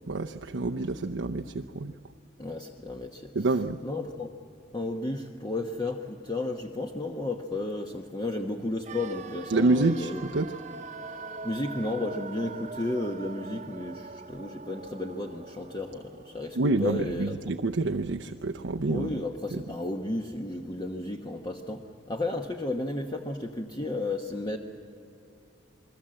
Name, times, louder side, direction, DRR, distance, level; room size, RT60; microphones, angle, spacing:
voice 1, 0.0-1.9 3.3-3.8 9.5-10.6 16.6-19.2 19.5-19.6, right 2 dB, 90° right, 3 dB, 0.7 m, -27 dB
voice 2, 2.4-3.3 3.8-4.3 4.7-10.2 11.4-17.3 18.9-24.6, left 2 dB, 25° left, 3 dB, 1.1 m, -33 dB
sound 1, 8.8-18.8 19.0-19.1, right 4 dB, 40° right, 1.0 m, -44 dB
28.0 x 21.0 x 7.7 m, 2.5 s
head